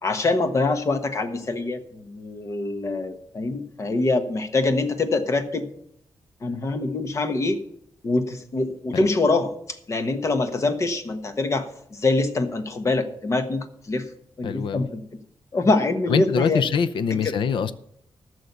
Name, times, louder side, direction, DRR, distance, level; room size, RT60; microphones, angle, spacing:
voice 1, 0.0-5.7 6.4-7.6 8.0-14.1 14.4-15.2 15.5-16.6 17.1-17.4, left 3 dB, 35° left, 8 dB, 1.3 m, -24 dB
voice 2, 14.4-14.8 16.1-17.7, left 6 dB, 80° left, 13 dB, 0.7 m, -24 dB
13.5 x 6.5 x 6.9 m, 0.74 s
wide cardioid pair, 145°, 8 cm